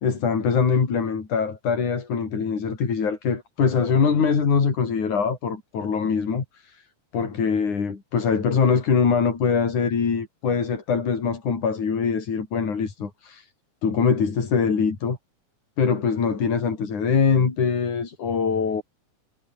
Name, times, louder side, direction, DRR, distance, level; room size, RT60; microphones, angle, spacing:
voice 1, 0.0-6.8 7.1-13.5 13.8-15.2 15.8-18.8, left 6 dB, 90° left, 5.5 m, -23 dB
omnidirectional pair, 3.4 m